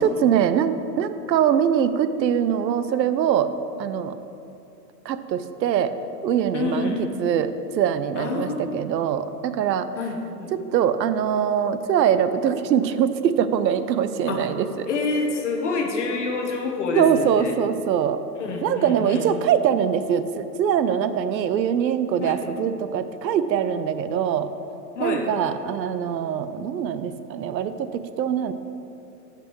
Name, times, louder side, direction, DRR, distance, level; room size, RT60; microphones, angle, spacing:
voice 1, 0.0-3.5 3.8-4.2 5.1-5.9 6.2-7.5 7.8-9.9 10.5-14.9 17.0-18.2 18.6-24.5 25.0-28.5, right 8 dB, 90° right, 12 dB, 0.7 m, -23 dB
voice 2, 6.5-7.0 8.2-8.8 10.0-10.5 14.3-14.4 14.9-17.5 18.4-19.2 22.2-22.4 25.0-25.2, left 4 dB, 45° left, 2 dB, 1.0 m, -27 dB
6.2 x 5.7 x 6.2 m, 2.8 s
hypercardioid pair, 175°, 50 cm